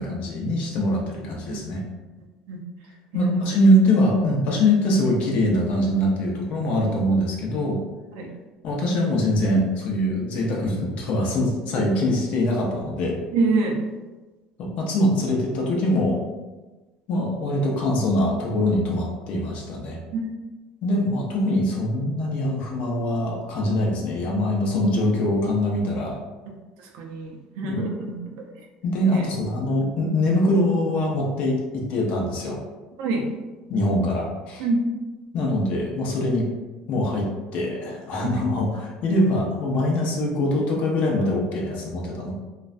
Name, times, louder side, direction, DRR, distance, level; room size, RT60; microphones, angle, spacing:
voice 1, 0.0-1.8 3.1-7.8 8.6-13.2 14.6-16.2 17.1-20.0 20.8-26.2 27.6-27.8 28.8-32.6 33.7-34.7 35.3-36.4 36.9-42.3, left 1 dB, 60° left, -1 dB, 0.6 m, -23 dB
voice 2, 13.3-13.8 20.1-20.3 26.9-28.5 29.1-29.2 33.0-33.3 34.6-34.9 38.4-38.5, right 3 dB, 80° right, 1 dB, 0.5 m, -26 dB
2.4 x 2.1 x 2.4 m, 1.2 s
supercardioid pair, 100°, 3 cm